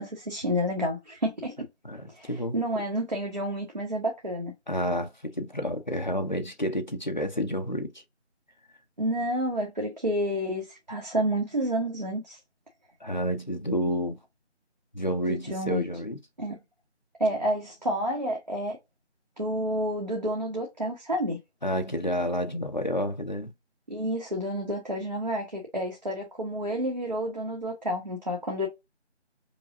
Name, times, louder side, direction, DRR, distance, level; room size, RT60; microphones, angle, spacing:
voice 1, 0.0-1.6 2.1-4.5 9.0-12.4 15.3-15.8 16.4-16.6 17.2-18.8 19.4-21.4 23.9-28.7, equal, 40° right, 1.1 m, -29 dB
voice 2, 1.8-2.6 4.7-8.0 13.0-14.2 14.9-16.2 21.6-23.5, equal, 40° left, 0.6 m, -30 dB
5.0 x 2.4 x 2.6 m
figure-of-eight pair, 180°, 35 cm